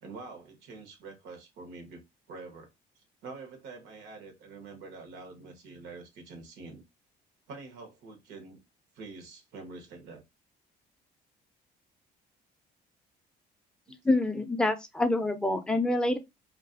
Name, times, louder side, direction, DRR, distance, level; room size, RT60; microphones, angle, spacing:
voice 1, 0.0-2.7 3.0-6.8 7.5-8.6 8.9-10.2 13.9-14.0 14.3-14.5, right 3 dB, 90° right, 0.9 m, -46 dB
voice 2, 14.0-16.2, left 2 dB, 5° left, 0.4 m, -26 dB
2.4 x 2.3 x 2.4 m
cardioid pair, 110°, 17 cm